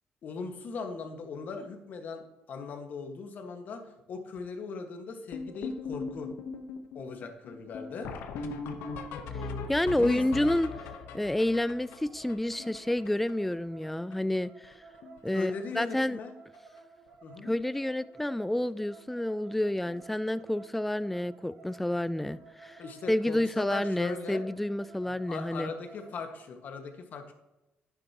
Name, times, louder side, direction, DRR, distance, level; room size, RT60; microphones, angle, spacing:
voice 1, 0.2-6.3 6.9-8.1 10.0-10.5 15.3-16.3 17.2-17.5 22.8-24.5 25.2-27.3, left 4 dB, 55° left, 5 dB, 1.6 m, -39 dB
sound 1, 5.3-13.5 13.8-13.9 14.1-14.4 14.6-15.2 15.5-15.7 16.5-16.6 17.1-17.2 17.4-17.6 19.9-20.0 22.3-22.4, left 4 dB, 85° left, 1.0 m, -40 dB
sound 2, 7.8-26.5, right 4 dB, 55° right, 1.9 m, -54 dB
voice 2, 9.7-10.7 11.1-14.7 15.2-16.2 17.4-22.8 23.1-25.7, left 1 dB, 5° left, 16 dB, 0.3 m, -29 dB
11.0 x 9.1 x 2.9 m, 0.99 s
cardioid pair, 110°, 4 cm